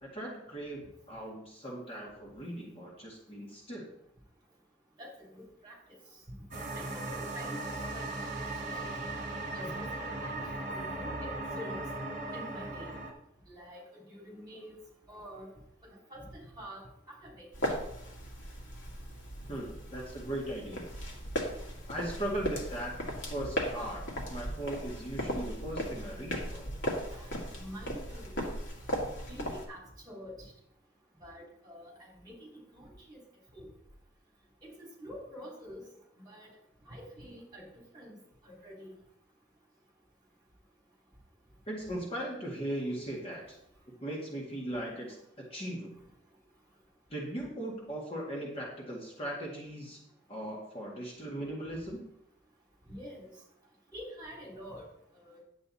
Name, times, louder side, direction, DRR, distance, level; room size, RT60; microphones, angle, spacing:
voice 1, 0.0-3.9 19.5-20.9 21.9-22.9 23.3-24.0 24.3-26.7 41.7-43.4 44.0-45.2 45.5-45.9 47.1-50.0 50.3-52.0, right 1 dB, 30° left, -3 dB, 2.0 m, -38 dB
voice 2, 5.0-5.8 6.7-8.3 8.7-8.9 9.5-11.8 12.3-12.9 13.5-14.8 15.1-15.5 15.9-17.8 27.1-28.3 29.3-30.5 31.2-33.2 33.5-33.7 34.6-34.7 35.0-35.8 36.2-36.5 36.9-37.6 37.9-38.1 38.4-38.9 52.9-53.3 53.9-54.9 55.1-55.4, equal, 20° right, -2 dB, 3.4 m, -47 dB
sound 1, 6.5-13.1, right 2 dB, 40° right, 1.8 m, -37 dB
sound 2, 17.5-29.7, equal, 65° left, 2.1 m, -37 dB
10.0 x 8.1 x 4.2 m, 0.77 s
head